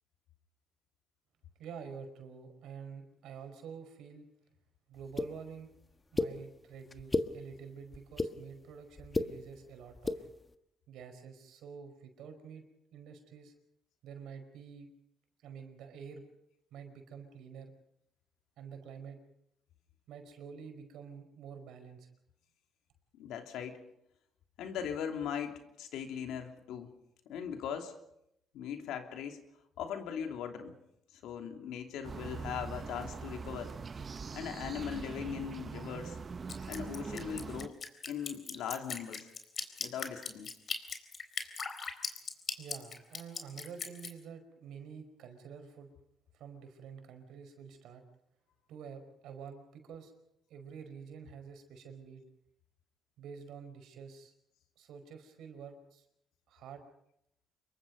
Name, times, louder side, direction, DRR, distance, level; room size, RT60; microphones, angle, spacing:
voice 1, 1.6-4.2 4.9-5.7 6.1-10.3 10.9-12.6 12.9-13.5 14.0-14.9 15.4-16.3 16.7-17.7 18.6-19.2 20.1-22.1 42.6-45.9 46.3-48.0 48.7-50.1 50.5-52.2 53.2-54.3 54.8-56.0 56.5-56.8, right 6 dB, 85° right, 6 dB, 4.9 m, -48 dB
sound 1, 5.2-5.3 6.2-6.3 6.9-7.3 7.9-8.3 9.0-9.3 10.0-10.2, left 3 dB, 25° left, 1.5 m, -30 dB
voice 2, 23.1-23.8 24.6-26.9 27.3-27.9 28.5-29.4 29.8-30.8 31.1-33.8 34.3-36.2 36.7-37.8 38.1-39.3 39.8-40.5, left 8 dB, 90° left, 5 dB, 2.9 m, -39 dB
sound 2, 32.0-37.7, right 5 dB, 40° right, 1.0 m, -42 dB
Drip, 36.5-44.1, left 5 dB, 45° left, 3.7 m, -39 dB
27.5 x 23.0 x 5.4 m, 0.78 s
cardioid pair, 90°, 0 cm